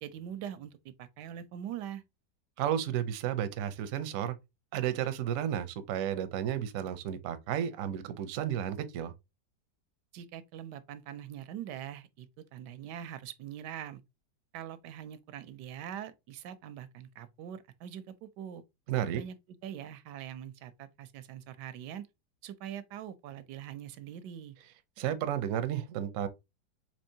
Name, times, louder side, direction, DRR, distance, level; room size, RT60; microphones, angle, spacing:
voice 1, 0.0-2.0 10.1-14.0 14.5-18.6 19.1-19.4 19.6-22.1 22.4-24.6, right 10 dB, 85° right, 1.2 m, -43 dB
voice 2, 2.6-4.4 4.7-9.1 18.9-19.2 25.0-26.3, right 10 dB, 70° right, 0.8 m, -32 dB
4.4 x 3.0 x 2.7 m
omnidirectional pair, 1.8 m